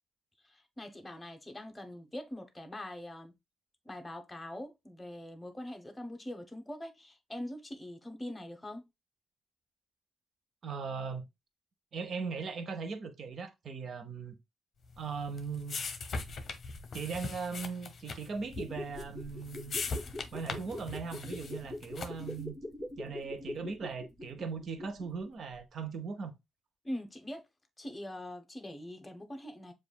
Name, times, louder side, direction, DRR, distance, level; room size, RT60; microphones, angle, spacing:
voice 1, 0.4-3.3 3.8-8.9 26.8-27.5 27.8-29.7, left 1 dB, 15° left, 0.9 m, -43 dB
voice 2, 10.6-11.3 11.9-14.3 15.0-15.8 16.9-19.8 20.3-22.5 23.0-26.3, right 5 dB, 55° right, 0.8 m, -39 dB
sound 1, 14.9-22.4, left 4 dB, 50° left, 0.8 m, -41 dB
Wobble Board, 18.5-25.3 25.5-25.6, left 1 dB, 35° right, 1.4 m, -43 dB
7.0 x 2.5 x 2.2 m
cardioid pair, 85°, 0 cm